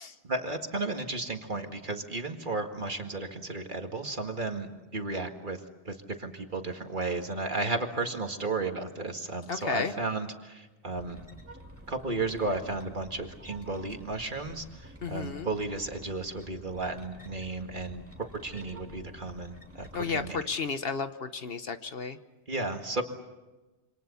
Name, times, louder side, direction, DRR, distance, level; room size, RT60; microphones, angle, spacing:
voice 1, 0.2-5.6 5.9-11.2 11.9-20.4 22.5-23.0, right 3 dB, 45° right, 4 dB, 2.1 m, -34 dB
voice 2, 9.5-9.9 15.0-15.5 19.9-22.2, left 5 dB, 60° left, 10 dB, 1.2 m, -33 dB
sound 1, 10.9-20.4, right 1 dB, 10° right, 2.7 m, -49 dB
27.5 x 26.0 x 7.1 m, 1.1 s
omnidirectional pair, 1.2 m